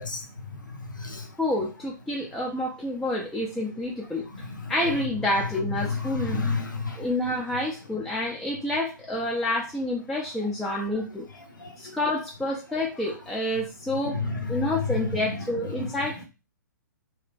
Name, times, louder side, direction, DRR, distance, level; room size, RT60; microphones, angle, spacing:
voice 1, 0.0-1.4 4.2-5.1 5.7-7.1 10.6-11.0 11.3-12.0 13.0-13.1 13.9-16.2, left 4 dB, 80° left, 4 dB, 0.7 m, -32 dB
voice 2, 1.4-4.3 4.7-6.5 7.0-11.3 11.8-14.2 14.5-16.2, left 1 dB, ahead, -4 dB, 0.4 m, -28 dB
2.8 x 2.5 x 2.4 m, 0.29 s
figure-of-eight pair, 120°, 10 cm